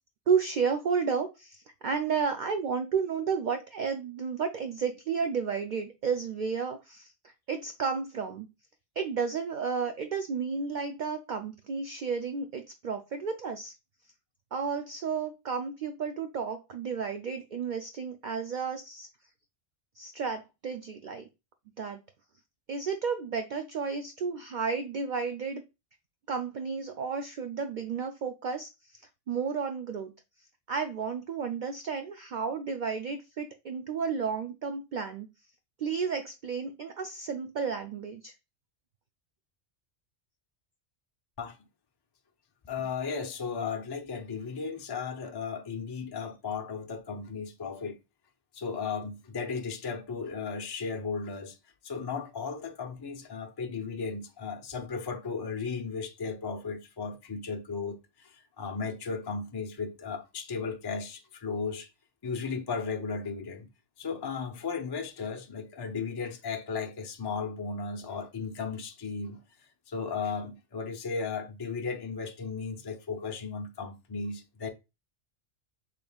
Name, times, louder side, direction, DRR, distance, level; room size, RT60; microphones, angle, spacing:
voice 1, 0.3-7.1 7.5-8.5 9.0-13.7 14.5-19.1 20.0-21.2 21.8-22.0 22.7-25.6 26.3-28.7 29.3-30.1 30.7-35.3 35.8-38.3, right 5 dB, 60° right, 0.5 m, -32 dB
voice 2, 42.6-48.0 48.5-51.6 51.8-61.9 62.2-63.7 64.0-69.4 69.9-74.7, left 5 dB, 30° left, 0.5 m, -35 dB
5.1 x 3.3 x 2.3 m
omnidirectional pair, 1.2 m